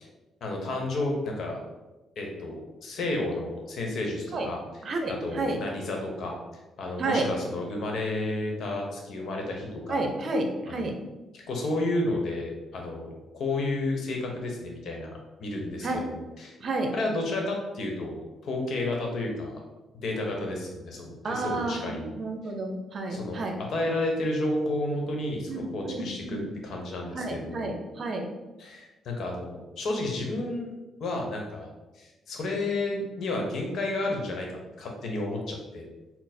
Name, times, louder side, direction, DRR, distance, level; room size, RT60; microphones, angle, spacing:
voice 1, 0.4-1.6 2.2-4.6 5.1-6.4 6.8-10.0 10.7-11.0 11.3-16.6 16.9-19.6 20.0-22.1 23.1-23.4 23.7-27.7 28.6-30.7 31.0-31.7 32.0-35.8, left 2 dB, 65° left, 1 dB, 0.9 m, -31 dB
voice 2, 4.8-5.6 7.0-7.3 9.9-10.9 15.8-16.0 16.6-16.9 21.2-23.6 25.5-26.5 27.1-28.3, right 2 dB, 50° right, 3 dB, 0.7 m, -30 dB
4.2 x 2.0 x 4.2 m, 1.1 s
cardioid pair, 90°, 0 cm